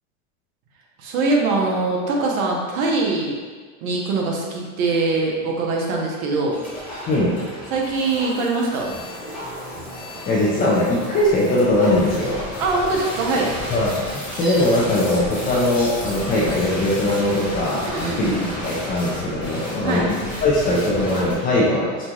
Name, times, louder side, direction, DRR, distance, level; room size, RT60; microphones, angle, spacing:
voice 1, 1.0-3.3 3.8-6.6 7.7-8.9 12.6-13.5 17.9-18.4 19.8-20.1, right 3 dB, 80° right, -1 dB, 1.0 m, -22 dB
sound 1, 6.5-21.3, equal, 5° right, 1.1 m, -32 dB
voice 2, 10.3-12.4 13.7-22.0, left 1 dB, 20° left, -6 dB, 0.4 m, -20 dB
5.2 x 2.4 x 3.0 m, 1.5 s
supercardioid pair, 140°, 41 cm